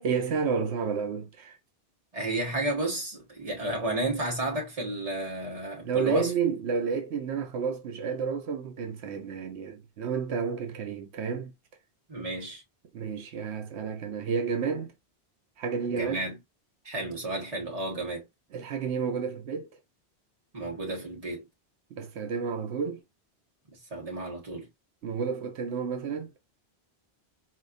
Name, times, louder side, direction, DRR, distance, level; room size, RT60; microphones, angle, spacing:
voice 1, 0.0-1.6 5.8-11.5 12.9-14.9 15.6-16.2 18.5-19.7 21.9-23.0 25.0-26.3, right 6 dB, 85° right, 1.0 m, -31 dB
voice 2, 2.1-6.3 12.1-12.6 15.9-16.4 16.8-18.3 20.5-21.4 23.7-24.7, right 1 dB, 35° right, 1.5 m, -32 dB
4.4 x 2.8 x 2.5 m
omnidirectional pair, 1.1 m